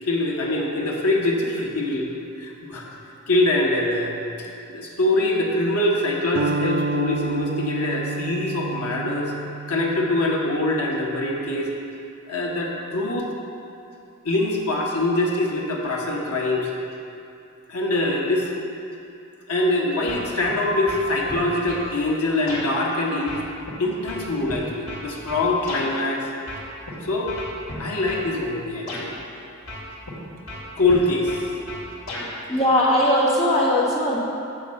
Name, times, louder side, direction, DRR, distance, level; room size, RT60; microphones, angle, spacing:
voice 1, 0.0-2.1 2.4-2.9 3.3-9.3 9.7-11.7 12.3-13.3 14.2-16.7 17.7-18.5 19.5-23.4 23.8-26.3 27.0-27.3 27.8-29.1 30.8-31.4, left 2 dB, 85° left, -2 dB, 1.5 m, -24 dB
sound 1, 6.4-11.6, right 4 dB, 65° right, 0.4 m, -30 dB
sound 2, 20.1-20.6 20.9-21.9 22.5-22.7 23.3-25.9 26.5-26.9 27.3-28.3 28.9-29.1 29.7-30.2 30.5-32.3, left 1 dB, 60° left, 2.3 m, -34 dB
voice 2, 32.5-34.2, left 1 dB, 30° left, -6 dB, 1.8 m, -19 dB
8.0 x 7.0 x 6.6 m, 2.6 s
head